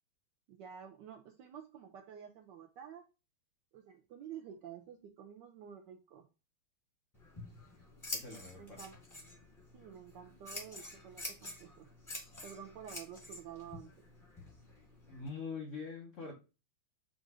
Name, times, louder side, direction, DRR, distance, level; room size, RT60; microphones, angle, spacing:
voice 1, 0.5-3.0 3.7-6.3 8.6-9.0 9.7-11.9 12.4-13.9, right 8 dB, 75° right, 4 dB, 1.0 m, -50 dB
Scissors, 7.1-15.3, left 1 dB, 15° left, 0.7 m, -48 dB
voice 2, 8.1-8.8 15.1-16.3, left 4 dB, 55° left, 0 dB, 0.8 m, -44 dB
3.8 x 2.5 x 4.7 m, 0.30 s
omnidirectional pair, 2.4 m